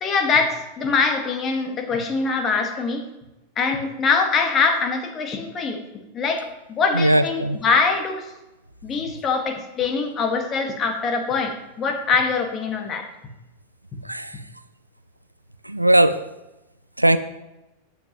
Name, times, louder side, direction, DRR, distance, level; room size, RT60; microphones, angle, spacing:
voice 1, 0.0-3.0 3.6-5.8 6.1-8.3 8.8-13.1, left 4 dB, 25° left, 5 dB, 1.7 m, -23 dB
voice 2, 6.9-7.6 14.0-14.3 15.7-16.2 17.0-17.2, right 1 dB, 85° right, 13 dB, 0.5 m, -18 dB
13.5 x 9.8 x 3.0 m, 0.97 s
figure-of-eight pair, 90°, 0 cm